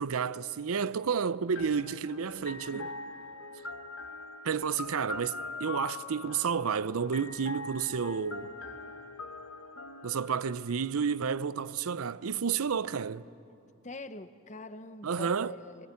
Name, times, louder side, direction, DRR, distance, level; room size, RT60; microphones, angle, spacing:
voice 1, 0.0-2.9 4.4-8.5 10.0-13.3 15.0-15.5, right 6 dB, 80° right, 0.6 m, -31 dB
sound 1, 1.5-11.3, left 3 dB, 65° left, 1.6 m, -42 dB
voice 2, 13.8-15.9, left 2 dB, 30° left, 0.9 m, -44 dB
24.0 x 23.5 x 9.6 m
head